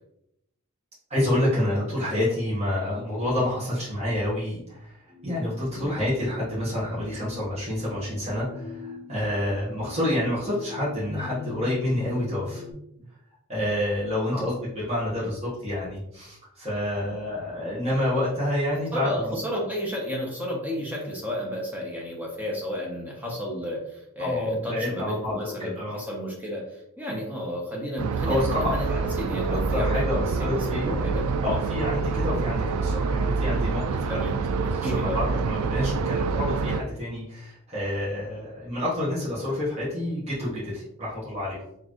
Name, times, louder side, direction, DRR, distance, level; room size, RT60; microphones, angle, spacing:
voice 1, 1.1-5.0 5.2-12.6 13.5-19.1 24.2-26.0 28.2-29.0 29.3-31.0 31.4-41.6, left 1 dB, 30° right, -9 dB, 1.3 m, -28 dB
sound 1, 5.1-12.7, left 5 dB, 10° left, 1.5 m, -42 dB
voice 2, 18.9-31.6 34.1-34.3 34.8-35.5, equal, 10° right, -2 dB, 0.9 m, -32 dB
sound 2, 28.0-36.8, right 4 dB, 85° right, 0.3 m, -26 dB
4.3 x 3.1 x 3.0 m, 0.78 s
head